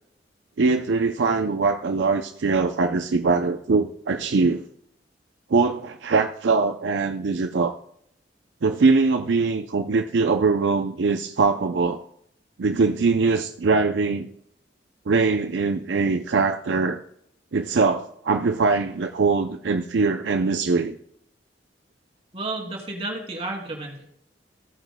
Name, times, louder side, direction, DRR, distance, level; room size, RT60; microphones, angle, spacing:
voice 1, 0.6-4.6 5.5-7.8 8.6-12.0 12.6-14.3 15.1-17.0 17.5-21.0, right 4 dB, 90° right, 7 dB, 0.5 m, -22 dB
voice 2, 22.3-24.1, right 2 dB, 35° right, 0 dB, 2.6 m, -32 dB
15.5 x 8.9 x 2.2 m, 0.70 s
head